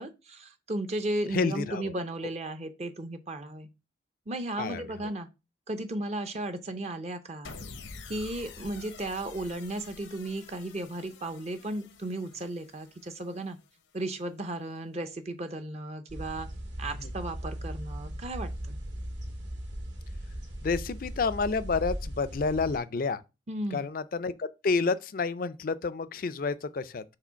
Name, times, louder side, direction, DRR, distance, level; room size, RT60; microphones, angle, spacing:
voice 1, 0.0-3.7 4.3-5.3 5.7-7.6 8.1-13.6 13.9-16.5 16.8-18.8 23.5-23.9, right 1 dB, 35° right, 0.6 m, -35 dB
voice 2, 1.3-1.9 4.6-4.8 20.6-23.2 23.7-27.0, left 4 dB, 45° left, 0.4 m, -29 dB
sound 1, 7.4-13.8, left 4 dB, 85° left, 0.8 m, -48 dB
sound 2, 16.1-22.8, equal, 75° right, 2.1 m, -38 dB
4.9 x 3.8 x 5.6 m
head